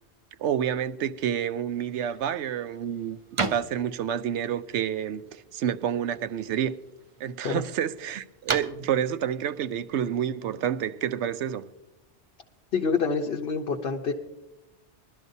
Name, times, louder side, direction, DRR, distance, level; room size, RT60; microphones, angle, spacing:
voice 1, 0.4-3.2 3.5-6.8 7.2-11.7, right 9 dB, 80° right, 0.9 m, -29 dB
sound 1, 1.7-10.9, right 4 dB, 35° right, 0.6 m, -39 dB
voice 2, 12.7-14.1, left 5 dB, 60° left, 1.0 m, -27 dB
22.0 x 12.5 x 2.7 m
omnidirectional pair, 1.2 m